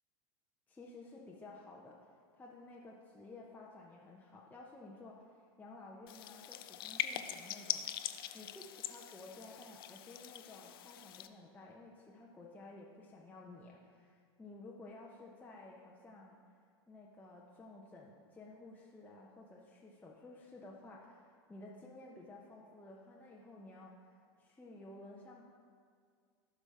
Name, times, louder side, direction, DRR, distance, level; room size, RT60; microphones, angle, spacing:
voice 1, 0.7-2.1 2.3-7.9 8.3-16.4 16.9-24.1 24.4-25.5, left 2 dB, 10° left, -3 dB, 0.9 m, -54 dB
sound 1, 6.1-11.3, left 12 dB, 60° left, 0.5 m, -42 dB
15.0 x 6.2 x 3.3 m, 2.1 s
figure-of-eight pair, 80°, 14 cm